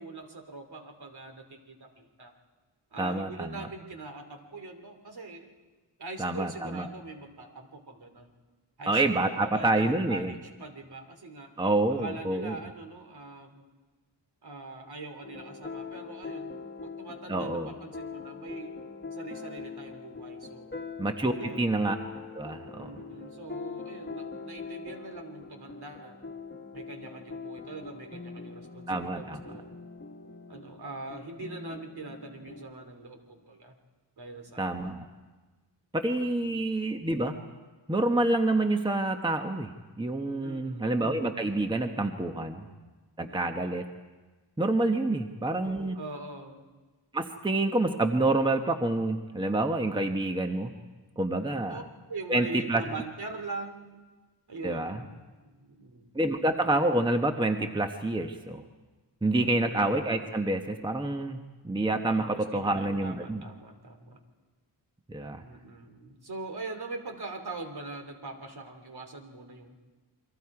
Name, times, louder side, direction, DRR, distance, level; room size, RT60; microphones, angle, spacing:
voice 1, 0.0-2.3 2.9-5.5 6.0-8.3 8.8-11.5 11.9-13.7 14.4-16.5 16.8-18.7 19.1-20.7 21.4-21.7 22.8-26.3 26.7-29.7 30.5-33.8 34.2-34.8 36.4-36.6 40.4-40.9 43.2-43.8 45.1-45.4 45.9-46.6 51.3-51.8 52.1-54.0 54.5-56.1 59.4-59.7 62.1-64.2 65.4-69.8, right 3 dB, 60° right, 4 dB, 2.9 m, -43 dB
voice 2, 3.0-3.7 6.2-6.9 8.9-10.3 11.6-12.6 17.3-17.7 21.0-22.0 22.3-22.9 28.9-29.4 34.6-35.1 35.9-37.3 37.9-39.7 40.0-42.7 43.2-43.8 44.6-46.0 47.1-50.7 51.2-51.8 52.3-52.8 54.6-55.0 56.1-58.6 59.2-63.4 65.1-65.4, right 2 dB, 10° right, 5 dB, 1.0 m, -28 dB
sound 1, 15.2-32.7, left 4 dB, 25° left, 1.5 m, -42 dB
29.0 x 23.0 x 4.8 m, 1.3 s
wide cardioid pair, 130°, 43 cm